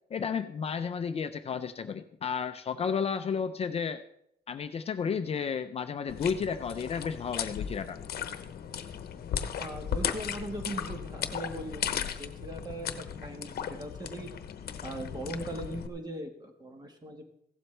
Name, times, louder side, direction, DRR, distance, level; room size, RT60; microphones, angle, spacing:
voice 1, 0.1-4.0 4.5-8.0, left 6 dB, 35° left, 9 dB, 0.5 m, -32 dB
sound 1, 6.1-15.9, left 8 dB, 65° left, 0.9 m, -36 dB
voice 2, 9.6-14.3 14.8-17.2, right 1 dB, 25° right, 4 dB, 1.5 m, -40 dB
15.5 x 12.0 x 3.3 m, 0.76 s
wide cardioid pair, 175°, 17 cm